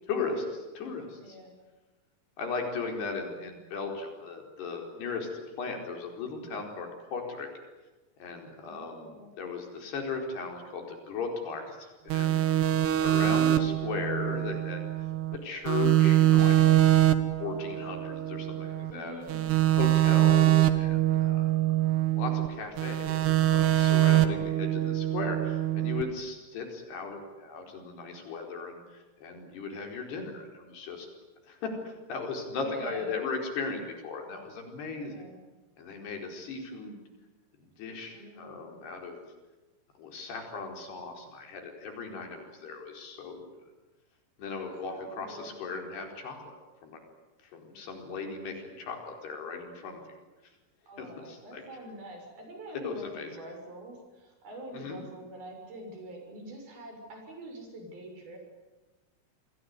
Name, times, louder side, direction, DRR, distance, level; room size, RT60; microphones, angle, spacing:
voice 1, 0.1-1.4 2.4-5.3 5.6-7.5 8.2-12.6 13.0-14.8 15.3-16.9 17.4-19.2 19.8-21.5 22.2-31.1 31.5-35.2 35.8-37.0 37.8-39.2 40.0-43.5 44.4-46.6 46.8-47.0 47.4-50.2 51.0-51.6 52.7-53.3 54.7-55.0, left 4 dB, 90° left, 3 dB, 6.5 m, -37 dB
voice 2, 1.2-1.5 8.6-9.3 18.9-19.6 24.1-24.5 32.6-33.2 34.8-35.4 38.1-38.8 42.1-42.3 44.8-45.7 50.9-58.4, right 1 dB, 65° right, 2 dB, 8.5 m, -46 dB
sound 1, 12.1-15.4 15.7-18.9 19.3-22.5 22.8-26.0, right 13 dB, 85° right, 3.5 m, -24 dB
28.5 x 21.5 x 9.6 m, 1.2 s
omnidirectional pair, 4.6 m